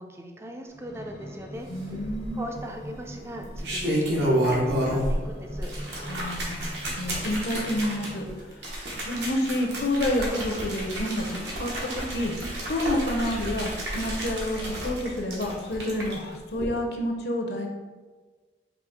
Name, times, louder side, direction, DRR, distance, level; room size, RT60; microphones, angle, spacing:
voice 1, 0.0-1.7 2.3-5.7, equal, 15° right, 3 dB, 0.4 m, -40 dB
sound 1, 0.7-8.6 9.2-10.5 11.1-11.2, equal, 85° left, 1.2 m, -43 dB
voice 2, 1.7-2.5 6.1-6.7 6.9-8.2 8.5-8.7 9.0-17.7, left 1 dB, 60° left, 2 dB, 0.6 m, -29 dB
sound 2, 1.9-2.6 3.4-5.2 5.5-16.1 16.5-16.6, equal, 80° right, 1.1 m, -30 dB
5.0 x 2.8 x 3.6 m, 1.4 s
head